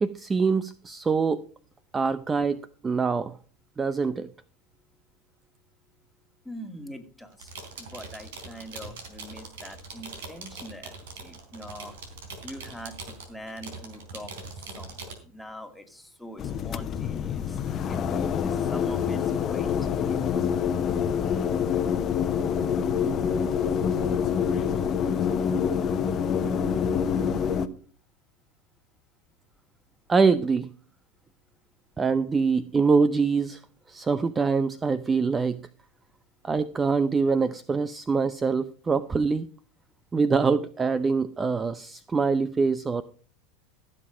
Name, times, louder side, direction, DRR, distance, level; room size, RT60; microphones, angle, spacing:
voice 1, 0.0-1.4 1.9-2.6 2.8-3.4 3.8-4.3 30.1-30.7 32.0-33.6 33.9-35.6 36.4-39.5 40.1-43.0, right 4 dB, 20° right, 15 dB, 0.6 m, -24 dB
voice 2, 6.4-7.5 7.8-12.0 12.4-19.7, equal, ahead, 4 dB, 2.3 m, -43 dB
sound 1, 7.3-15.1, right 4 dB, 75° right, 3.8 m, -42 dB
sound 2, 16.4-27.7, left 7 dB, 40° left, 1.0 m, -26 dB
15.0 x 7.6 x 5.0 m, 0.42 s
hypercardioid pair, 95°, 0 cm